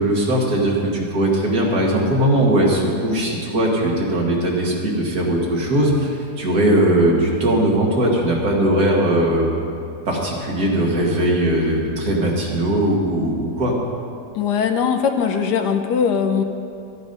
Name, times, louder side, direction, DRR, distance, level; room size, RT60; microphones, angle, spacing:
voice 1, 0.0-9.5 10.1-13.7, right 1 dB, 60° right, -2 dB, 2.2 m, -19 dB
voice 2, 14.3-16.4, left 6 dB, 75° left, 6 dB, 1.3 m, -20 dB
13.5 x 8.2 x 5.4 m, 2.5 s
omnidirectional pair, 1.9 m